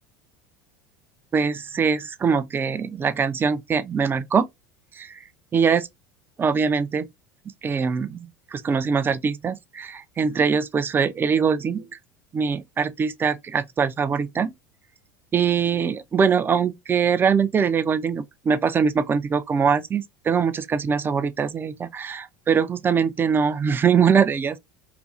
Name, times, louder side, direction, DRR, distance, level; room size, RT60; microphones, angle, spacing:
voice 1, 1.3-4.5 5.0-5.2 5.5-5.8 6.4-7.1 7.6-11.9 12.3-14.5 15.3-24.6, right 6 dB, 20° right, 0.3 m, -22 dB
2.6 x 2.5 x 2.3 m
figure-of-eight pair, 75°, 10 cm